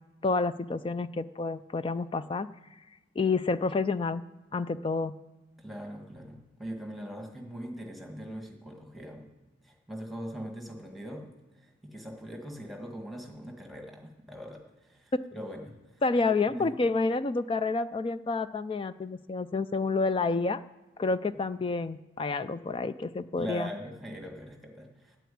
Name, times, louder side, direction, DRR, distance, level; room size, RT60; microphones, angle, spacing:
voice 1, 0.2-2.5 3.2-4.2 4.5-5.1 16.0-20.6 21.0-23.7, left 3 dB, 25° left, 13 dB, 0.3 m, -29 dB
voice 2, 5.6-9.3 9.6-11.3 11.5-16.7 23.4-25.2, equal, ahead, 2 dB, 1.7 m, -41 dB
9.2 x 9.2 x 8.5 m, 1.1 s
head